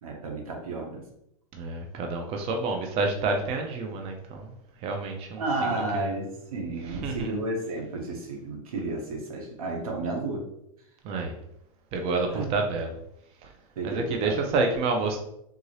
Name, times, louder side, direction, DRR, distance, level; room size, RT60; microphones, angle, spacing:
voice 1, 0.0-1.1 5.4-10.5 12.3-12.5 13.8-14.4, right 2 dB, 85° right, 1 dB, 1.1 m, -32 dB
voice 2, 1.6-4.5 4.8-5.4 5.7-6.1 6.8-7.3 11.0-11.4 11.9-12.9 13.8-15.2, right 3 dB, 35° right, 3 dB, 0.5 m, -28 dB
3.7 x 2.6 x 3.1 m, 0.78 s
supercardioid pair, 135°, 18 cm